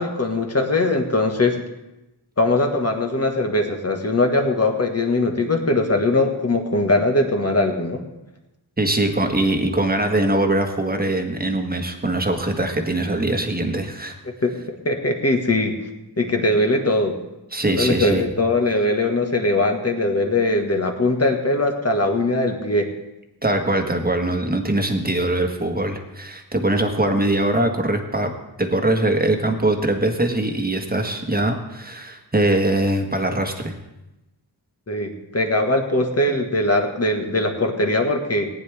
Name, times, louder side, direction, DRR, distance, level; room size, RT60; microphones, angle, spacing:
voice 1, 0.0-1.6 2.4-8.0 14.4-15.8 16.2-17.1 17.7-22.9 34.9-38.5, left 2 dB, 35° left, 3 dB, 1.6 m, -21 dB
voice 2, 8.8-14.2 17.5-18.3 23.4-28.3 28.6-33.8, right 1 dB, 20° right, 4 dB, 1.5 m, -22 dB
18.5 x 9.8 x 3.5 m, 0.96 s
wide cardioid pair, 90°, 42 cm